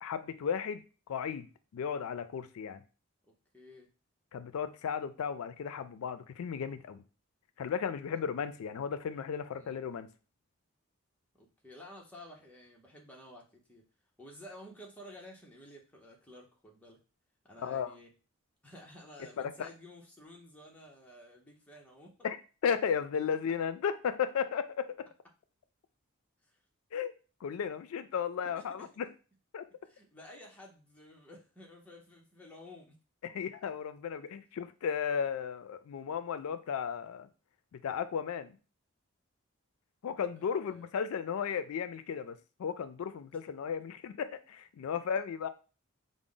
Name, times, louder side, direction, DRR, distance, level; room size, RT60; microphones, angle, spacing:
voice 1, 0.0-2.8 4.3-7.0 7.6-10.1 17.6-17.9 19.4-19.7 22.2-22.4 22.6-24.9 26.9-27.1 27.4-29.1 29.5-29.6 33.2-37.3 37.7-38.6 40.0-42.3 42.6-45.5, left 7 dB, 85° left, 0.3 m, -35 dB
voice 2, 3.2-3.9 8.1-8.2 9.5-9.7 11.3-13.9 14.2-17.0 17.4-18.1 18.6-22.2 26.4-26.6 28.4-28.9 29.8-33.0 40.3-40.9 43.3-43.4, left 1 dB, 5° left, 0.7 m, -53 dB
4.9 x 2.0 x 3.7 m
head